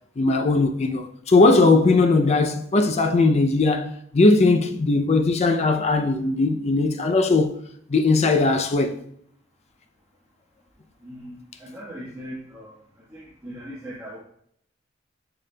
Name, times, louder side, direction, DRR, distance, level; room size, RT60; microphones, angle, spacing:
voice 1, 0.2-7.6 7.9-9.0, left 3 dB, 35° left, 0.4 m, -19 dB
voice 2, 11.0-12.8 13.1-14.2, equal, 10° right, 1.2 m, -39 dB
7.2 x 6.8 x 2.2 m
head